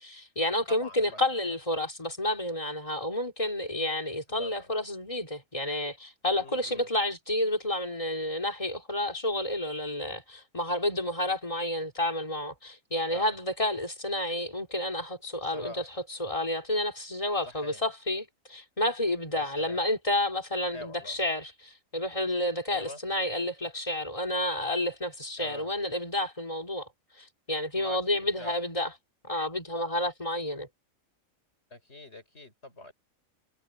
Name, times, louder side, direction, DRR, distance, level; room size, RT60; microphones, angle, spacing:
voice 1, 0.0-26.9 27.2-28.9 29.2-30.7, left 1 dB, 25° left, 2.7 m, -30 dB
voice 2, 0.7-1.2 4.3-4.7 6.4-6.9 13.1-13.3 15.4-15.9 17.4-17.8 19.3-19.8 20.7-21.2 22.7-23.0 25.4-25.7 27.7-28.6 31.7-32.9, left 1 dB, 50° left, 6.6 m, -45 dB
omnidirectional pair, 1.4 m